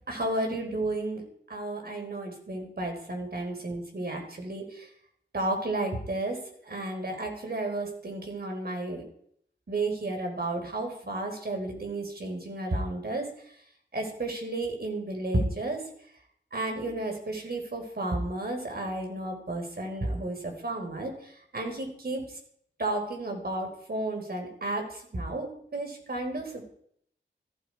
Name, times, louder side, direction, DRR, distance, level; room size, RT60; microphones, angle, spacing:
voice 1, 0.1-1.2 1.5-4.9 5.3-9.0 9.7-13.3 13.9-15.8 16.5-21.1 21.5-22.2 22.8-26.7, right 2 dB, 55° right, 3 dB, 4.6 m, -32 dB
15.0 x 14.5 x 4.8 m, 0.66 s
wide cardioid pair, 75°, 19 cm